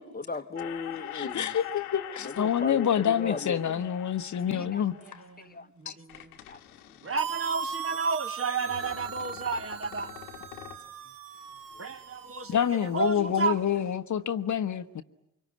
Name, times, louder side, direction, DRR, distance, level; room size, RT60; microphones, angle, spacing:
voice 1, 0.0-1.6 2.2-3.8 4.5-4.8 5.4-7.1 11.7-11.8, left 4 dB, 20° left, 1.2 m, -38 dB
sound 1, 0.6-5.6 6.1-7.8 8.6-10.9 11.4-13.0 13.2-13.9, left 13 dB, 80° left, 1.4 m, -44 dB
voice 2, 1.1-4.9 5.9-6.0 12.5-15.0, left 9 dB, 40° left, 1.1 m, -27 dB
voice 3, 4.5-6.3 7.0-10.2 11.8-13.6, right 4 dB, 30° right, 1.6 m, -32 dB
sound 2, 7.2-12.9, right 8 dB, 50° right, 1.3 m, -39 dB
25.0 x 24.0 x 9.7 m
figure-of-eight pair, 40°, 42 cm